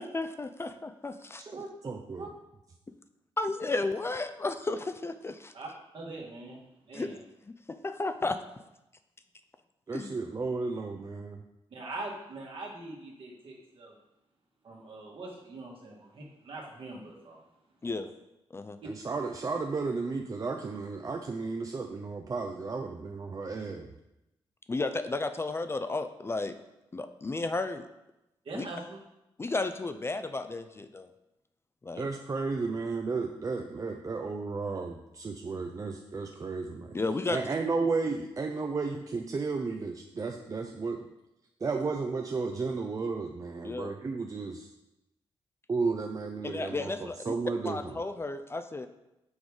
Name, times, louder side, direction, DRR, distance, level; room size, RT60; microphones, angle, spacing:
voice 1, 0.0-1.4 3.4-5.5 6.9-7.2 7.7-8.4 9.9-10.1 17.8-18.1 18.5-18.8 24.7-26.5 26.9-27.8 28.5-28.7 29.4-31.1 31.8-32.1 36.9-37.4 43.6-44.0 46.4-47.3 47.6-48.9, left 3 dB, 25° left, 9 dB, 0.4 m, -33 dB
voice 2, 1.4-2.3 9.9-11.4 18.9-23.9 32.0-37.0 37.3-41.1 41.6-44.7 45.7-48.0, right 4 dB, 35° right, 3 dB, 0.5 m, -33 dB
voice 3, 5.9-7.2 11.7-13.9 14.6-17.4 28.5-29.0, right 2 dB, 65° right, -2 dB, 1.7 m, -42 dB
6.2 x 3.5 x 4.8 m, 0.91 s
cardioid pair, 80°, 10 cm